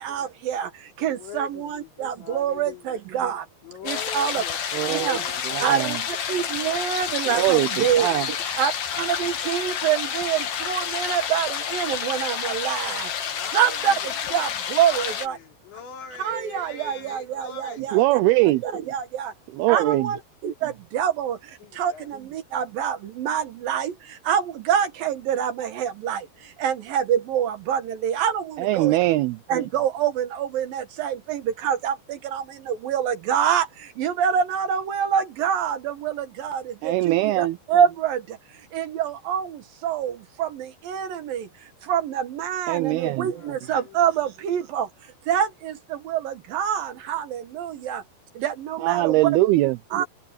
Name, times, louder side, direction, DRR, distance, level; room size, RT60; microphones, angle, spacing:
voice 1, 0.0-3.5 3.8-4.4 4.9-5.2 5.6-6.0 6.3-8.1 8.6-13.9 14.3-15.4 16.2-18.2 18.6-19.3 19.7-29.0 29.5-38.4 38.7-41.5 41.8-44.9 45.3-48.0 48.3-49.3 49.9-50.1, right 9 dB, 65° right, 2.7 m, -26 dB
voice 2, 1.0-3.0 3.6-6.3 7.4-8.5 13.3-14.2 14.8-18.0 21.6-22.2 43.3-44.2, left 7 dB, 85° left, 6.4 m, -42 dB
sound 1, 3.9-15.3, left 8 dB, 60° left, 4.0 m, -29 dB
voice 3, 4.7-5.2 5.4-6.0 7.3-8.3 17.9-18.6 19.5-20.1 28.6-29.4 36.8-37.6 42.7-43.3 48.8-49.8, right 17 dB, 85° right, 2.2 m, -22 dB
omnidirectional pair, 5.0 m